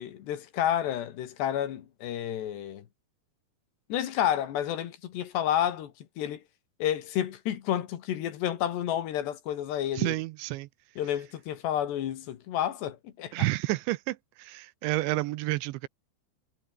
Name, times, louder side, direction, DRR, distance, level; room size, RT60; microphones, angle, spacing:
voice 1, 0.0-2.8 3.9-5.9 6.2-6.4 6.8-10.1 11.0-13.3, left 11 dB, 65° left, 3.8 m, -30 dB
voice 2, 9.9-10.7 13.3-15.9, right 19 dB, 80° right, 2.9 m, -30 dB
omnidirectional pair, 5.5 m